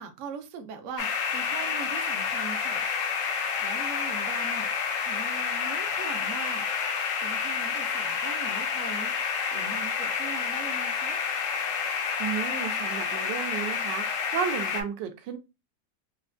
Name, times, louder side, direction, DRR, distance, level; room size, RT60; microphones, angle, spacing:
voice 1, 0.0-2.9 3.6-4.7 5.0-6.7 7.2-9.1 9.5-11.2, right 5 dB, 70° right, 0.7 m, -41 dB
sound 1, 1.0-14.8, left 6 dB, 70° left, 0.7 m, -29 dB
voice 2, 12.2-14.0 14.3-15.4, right 8 dB, 85° right, 1.3 m, -32 dB
4.2 x 2.2 x 2.4 m
omnidirectional pair, 1.9 m